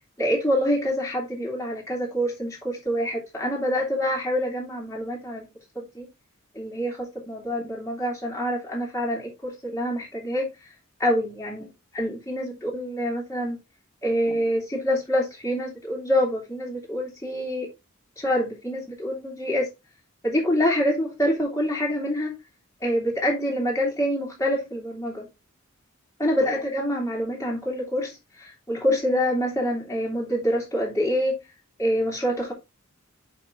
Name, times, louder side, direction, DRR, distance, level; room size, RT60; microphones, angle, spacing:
voice 1, 0.2-5.5 5.7-6.1 6.5-10.5 11.0-11.7 11.9-13.6 14.0-17.7 18.2-19.7 20.2-22.3 22.8-25.3 26.2-31.4 31.8-32.5, equal, 15° left, 2.6 m, -26 dB
6.5 x 5.7 x 3.9 m
head